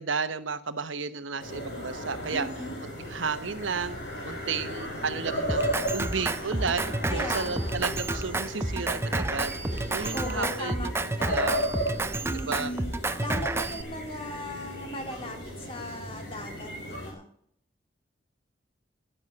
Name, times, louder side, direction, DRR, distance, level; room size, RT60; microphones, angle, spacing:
voice 1, 0.0-2.5 3.0-4.0 4.2-9.5 9.9-10.9 11.3-11.7 12.3-12.7, right 5 dB, 80° right, 11 dB, 1.0 m, -33 dB
sound 1, 1.4-17.1, equal, 60° left, 7.5 m, -36 dB
voice 2, 2.3-2.8 7.1-7.7 10.1-11.6 12.2-12.9 13.2-17.3, left 1 dB, 30° left, 3 dB, 2.8 m, -38 dB
Drum kit, 5.5-13.8, right 2 dB, 15° right, 0.6 m, -30 dB
11.0 x 11.0 x 7.8 m, 0.66 s
head